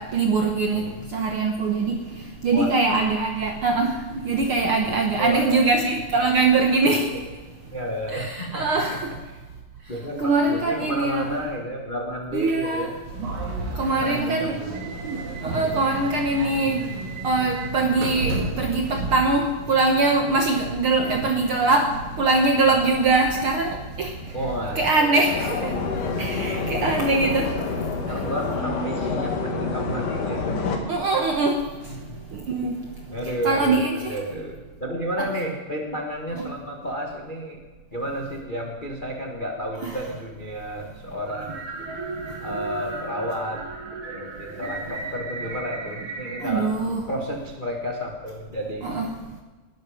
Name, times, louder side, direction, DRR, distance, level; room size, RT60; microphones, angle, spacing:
voice 1, 0.0-7.2 8.1-9.1 10.2-11.3 12.3-12.9 13.7-14.6 15.4-16.9 17.2-24.1 24.7-25.7 26.2-27.5 28.1-28.2 30.9-31.6 32.3-32.9 33.4-34.1 35.2-35.3 36.4-36.5 39.8-40.0 46.4-47.0 48.8-49.1, right 3 dB, 85° right, 3 dB, 1.2 m, -22 dB
voice 2, 0.7-1.1 2.5-2.7 5.2-5.6 7.7-9.0 9.3-9.4 9.9-12.9 14.0-15.0 16.6-16.9 24.3-25.3 26.1-26.6 27.2-27.5 28.1-30.6 31.8-32.2 33.1-37.6 37.9-41.6 42.4-43.6 44.1-46.7 47.1-49.0, equal, 40° left, 1 dB, 0.6 m, -31 dB
sound 1, 13.1-24.8, right 2 dB, 65° right, 3.8 m, -33 dB
sound 2, 25.2-30.8, left 4 dB, 60° left, 3.4 m, -27 dB
sound 3, 41.3-46.5, right 3 dB, 40° right, 2.4 m, -35 dB
20.0 x 12.5 x 5.1 m, 1.3 s
omnidirectional pair, 4.3 m